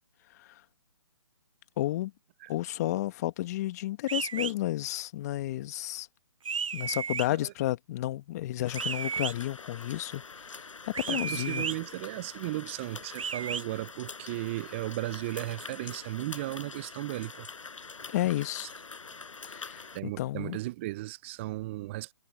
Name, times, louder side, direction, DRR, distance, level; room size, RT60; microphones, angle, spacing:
voice 1, 1.8-2.1 2.5-6.1 6.7-11.7 18.1-18.7 19.5-20.6, left 15 dB, 30° left, 1.6 m, -32 dB
come here whistle, 4.1-4.5 6.5-7.3 8.7-9.3 10.9-11.8 13.2-13.6, right 6 dB, 85° right, 0.5 m, -33 dB
sound 1, 8.7-20.0, left 4 dB, 75° left, 8.0 m, -45 dB
voice 2, 11.1-17.5 19.9-22.1, right 18 dB, 20° right, 0.7 m, -35 dB
hypercardioid pair, 150°, 17 cm